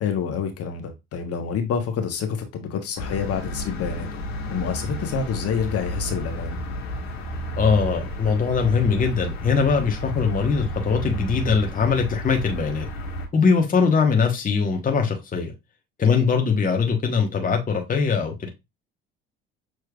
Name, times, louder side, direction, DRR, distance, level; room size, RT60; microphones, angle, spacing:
voice 1, 0.0-4.2 4.5-6.6, left 6 dB, 50° left, 1.3 m, -28 dB
sound 1, 3.0-13.3, equal, 80° left, 1.5 m, -32 dB
voice 2, 7.6-12.9 13.3-15.5 16.0-18.5, left 5 dB, 25° left, 1.1 m, -21 dB
6.5 x 3.1 x 2.3 m
hypercardioid pair, 65°, 31 cm